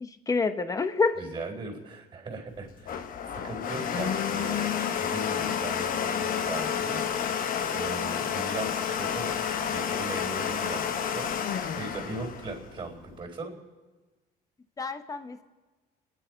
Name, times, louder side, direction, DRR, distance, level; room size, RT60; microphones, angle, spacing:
voice 1, 0.0-1.2 14.8-15.4, left 4 dB, 20° left, 10 dB, 0.9 m, -28 dB
voice 2, 1.2-3.0 3.4-4.7 5.0-7.4 7.7-9.3 9.7-11.3 11.7-13.6, right 2 dB, 30° right, 2 dB, 3.9 m, -38 dB
Domestic sounds home sounds, 2.5-13.2, left 8 dB, 55° left, 1.0 m, -30 dB
28.0 x 10.0 x 4.6 m, 1.2 s
cardioid pair, 110°, 17 cm